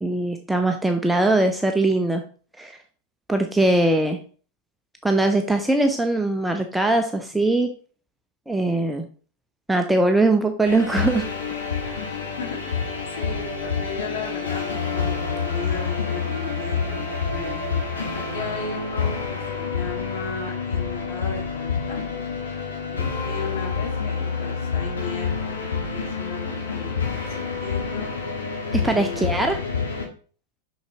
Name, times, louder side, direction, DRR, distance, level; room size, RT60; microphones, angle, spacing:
voice 1, 0.0-2.2 2.6-2.8 3.3-4.2 5.0-7.7 8.5-9.1 9.7-11.3 11.8-12.0 28.7-29.6, right 2 dB, 5° right, 5 dB, 0.6 m, -21 dB
sound 1, 10.6-30.0, left 5 dB, 70° left, 1.9 m, -28 dB
voice 2, 12.4-17.0 17.3-17.6 18.1-22.0 22.9-28.1 28.7-29.3, left 4 dB, 50° left, -2 dB, 2.1 m, -36 dB
6.5 x 5.7 x 3.0 m, 0.40 s
figure-of-eight pair, 90°, 0 cm